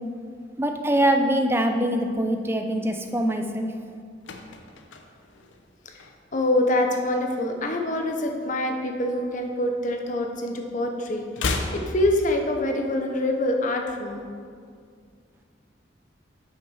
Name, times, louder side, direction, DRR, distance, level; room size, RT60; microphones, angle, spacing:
voice 1, 0.6-3.7, right 1 dB, 15° right, 5 dB, 0.5 m, -23 dB
sound 1, 4.0-6.5 6.8-7.1 7.4-8.9 9.1-10.5 10.7-12.9 13.1-13.2, left 3 dB, 90° left, 0.7 m, -34 dB
voice 2, 6.3-14.3, left 1 dB, 45° left, 3 dB, 0.8 m, -25 dB
8.1 x 6.2 x 4.8 m, 2.2 s
head